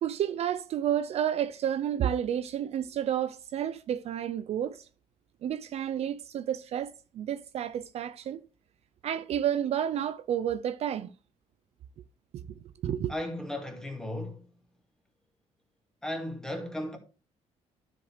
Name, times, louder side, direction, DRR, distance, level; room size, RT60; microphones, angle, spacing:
voice 1, 0.0-4.9 5.4-8.4 9.0-11.1 12.3-12.4 12.8-13.1, right 10 dB, 55° right, 0.5 m, -30 dB
voice 2, 13.1-14.4 16.0-17.0, left 1 dB, 5° left, 2.1 m, -35 dB
12.5 x 5.1 x 3.2 m
cardioid pair, 125°, 12 cm